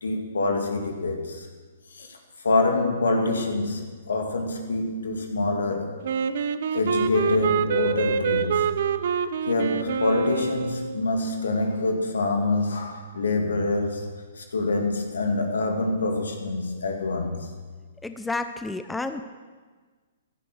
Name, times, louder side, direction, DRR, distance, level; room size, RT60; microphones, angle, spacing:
voice 1, 0.0-1.5 2.0-2.1 2.4-5.9 6.7-8.8 9.5-14.1 14.4-17.5, left 2 dB, 90° left, 3 dB, 2.7 m, -26 dB
Wind instrument woodwind instrument, 6.0-11.1, right 7 dB, 65° right, 0.8 m, -26 dB
voice 2, 18.0-19.2, left 3 dB, 5° left, 9 dB, 0.7 m, -30 dB
15.5 x 12.0 x 6.4 m, 1.4 s
hypercardioid pair, 135°, 0 cm